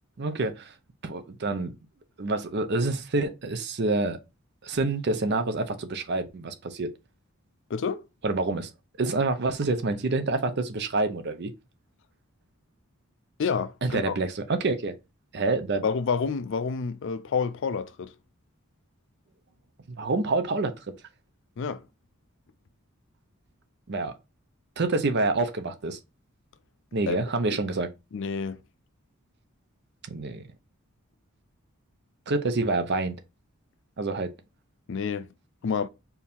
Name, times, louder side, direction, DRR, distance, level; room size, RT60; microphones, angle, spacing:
voice 1, 0.2-0.7 1.0-1.7 2.2-4.2 4.6-6.9 8.2-8.7 9.0-11.5 13.8-14.9 15.3-15.8 20.0-20.7 23.9-24.1 24.8-26.0 26.9-27.9 30.1-30.4 32.3-33.2 34.0-34.3, right 3 dB, 50° right, 0.6 m, -27 dB
voice 2, 7.7-8.0 13.4-14.2 15.8-18.1 21.6-21.8 27.1-27.2 27.4-27.6 28.1-28.6 34.9-35.3 35.6-35.9, left 5 dB, 60° left, 0.4 m, -29 dB
4.6 x 2.7 x 3.4 m
head